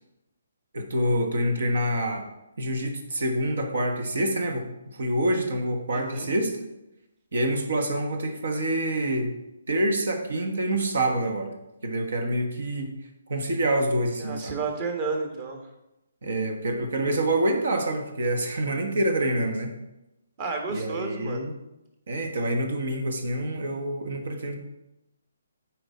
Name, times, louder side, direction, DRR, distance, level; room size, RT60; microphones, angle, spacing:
voice 1, 0.7-2.2 2.6-6.6 7.3-9.4 9.7-11.5 11.8-12.9 13.3-14.6 16.2-19.8 20.7-21.5 22.1-24.6, right 1 dB, 70° right, 5 dB, 1.2 m, -26 dB
voice 2, 5.9-6.3 14.2-15.6 20.4-21.5, right 4 dB, 35° right, 4 dB, 1.3 m, -31 dB
8.6 x 4.7 x 4.2 m, 0.93 s
hypercardioid pair, 145°, 0 cm